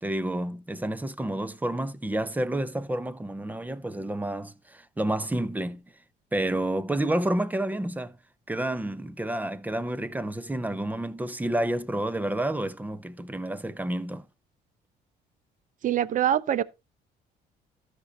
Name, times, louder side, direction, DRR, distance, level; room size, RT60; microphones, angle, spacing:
voice 1, 0.0-5.8 6.3-8.2 8.5-14.3, right 1 dB, 10° right, 0.8 m, -29 dB
voice 2, 15.8-16.6, right 11 dB, 50° right, 0.7 m, -24 dB
13.0 x 6.2 x 4.0 m
cardioid pair, 110°, 17 cm